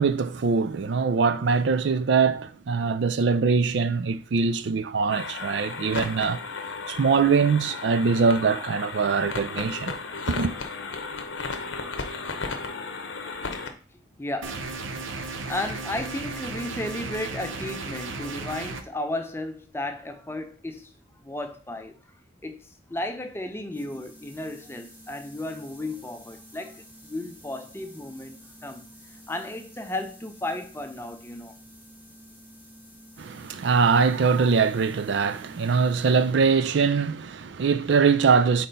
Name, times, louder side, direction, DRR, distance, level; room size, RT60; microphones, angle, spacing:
voice 1, 0.0-6.4 6.9-10.0 10.3-10.5 33.2-38.7, right 5 dB, 65° right, 0.4 m, -22 dB
sound 1, 5.1-13.7, left 4 dB, 75° left, 0.8 m, -34 dB
voice 2, 14.2-14.8 15.0-20.9 21.2-22.0 22.4-28.8 29.1-31.5, left 1 dB, 10° left, 0.5 m, -34 dB
sound 2, 14.4-18.8, right 3 dB, 90° right, 0.8 m, -35 dB
sound 3, 23.7-36.6, equal, 10° right, 1.0 m, -50 dB
4.3 x 4.2 x 5.2 m
head